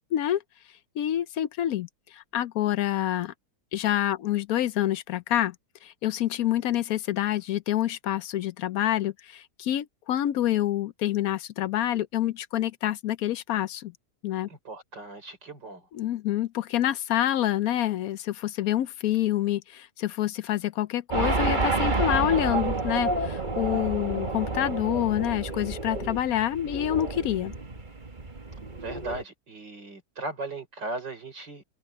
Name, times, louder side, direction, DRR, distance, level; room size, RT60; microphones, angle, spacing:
voice 1, 0.1-0.4 1.0-1.9 2.1-3.3 3.7-5.5 5.8-13.9 14.2-14.5 15.9-27.5, left 12 dB, 70° left, 1.0 m, -27 dB
voice 2, 14.5-15.9 28.7-31.6, right 2 dB, 90° right, 6.0 m, -37 dB
sound 1, 21.1-29.2, right 3 dB, 30° right, 1.7 m, -29 dB
omnidirectional pair, 1.9 m